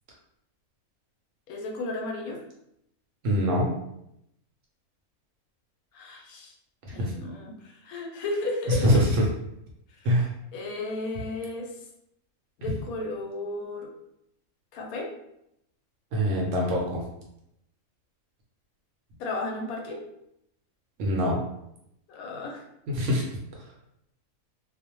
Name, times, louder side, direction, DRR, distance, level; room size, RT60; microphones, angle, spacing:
voice 1, 1.5-2.4 5.9-6.5 6.9-9.0 10.5-11.7 12.6-13.9 14.7-15.1 19.2-20.0 22.1-22.6, left 2 dB, 80° left, 1 dB, 1.0 m, -33 dB
voice 2, 3.2-3.7 7.0-7.1 8.7-9.2 10.0-10.3 16.1-17.0 21.0-21.4 22.9-23.2, equal, 65° right, -2 dB, 0.8 m, -23 dB
2.4 x 2.0 x 2.9 m, 0.80 s
omnidirectional pair, 1.5 m